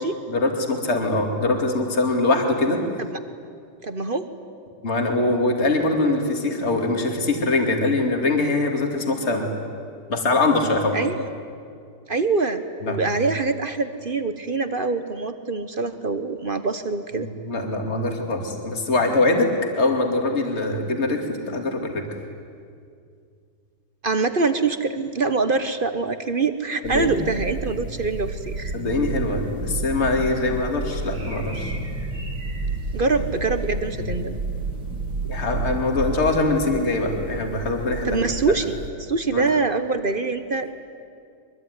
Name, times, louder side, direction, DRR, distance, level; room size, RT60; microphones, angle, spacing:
voice 1, 0.3-2.8 4.8-9.5 10.1-11.0 12.8-13.0 17.2-22.0 26.8-27.2 28.7-31.7 35.3-38.2 39.3-39.4, left 2 dB, 35° left, 3 dB, 2.8 m, -23 dB
voice 2, 3.8-4.3 10.9-11.3 12.1-17.3 24.0-28.7 32.9-34.4 38.0-40.7, right 3 dB, 35° right, 10 dB, 1.0 m, -24 dB
sound 1, 26.8-38.9, right 3 dB, 60° right, 3.5 m, -31 dB
23.5 x 22.5 x 9.8 m, 2.3 s
omnidirectional pair, 2.0 m